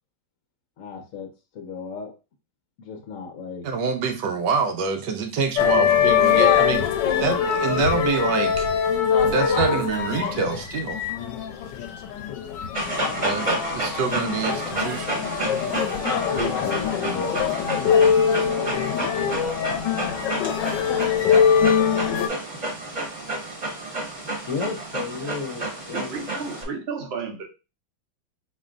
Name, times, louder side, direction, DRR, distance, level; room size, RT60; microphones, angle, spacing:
voice 1, 0.8-2.1 2.8-3.7 13.3-13.6 16.3-18.1 24.5-26.1, left 5 dB, 60° left, 3 dB, 0.9 m, -34 dB
voice 2, 3.6-6.9 7.2-8.7 9.2-11.0 13.2-15.3, right 5 dB, 75° right, 6 dB, 1.2 m, -26 dB
sound 1, 5.6-22.3, left 7 dB, 75° left, 1.2 m, -23 dB
Dog, 12.7-26.6, right 2 dB, 25° right, 1.1 m, -30 dB
voice 3, 25.9-27.4, right 5 dB, 55° right, 3 dB, 0.7 m, -33 dB
4.3 x 3.1 x 2.4 m, 0.30 s
omnidirectional pair, 2.0 m